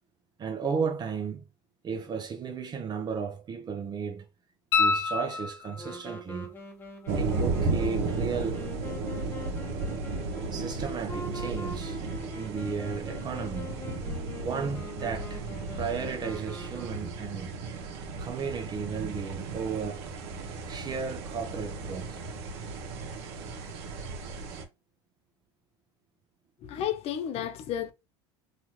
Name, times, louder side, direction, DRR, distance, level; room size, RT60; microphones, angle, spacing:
voice 1, 0.4-1.4 1.8-4.3 4.8-6.6 7.2-8.7 10.5-12.0 12.3-13.7 14.4-15.4 15.7-17.5 18.2-20.1 20.7-22.2, right 6 dB, 30° right, 0.5 m, -34 dB
sound 1, 4.7-6.0 8.8-8.9, left 4 dB, 85° left, 0.6 m, -27 dB
Wind instrument woodwind instrument, 5.7-17.5, left 1 dB, 15° left, 0.8 m, -43 dB
sound 2, 7.1-24.6, right 3 dB, 65° right, 0.8 m, -34 dB
voice 2, 26.6-27.9, left 10 dB, 45° left, 0.5 m, -32 dB
3.0 x 2.4 x 2.9 m
hypercardioid pair, 95°, 14 cm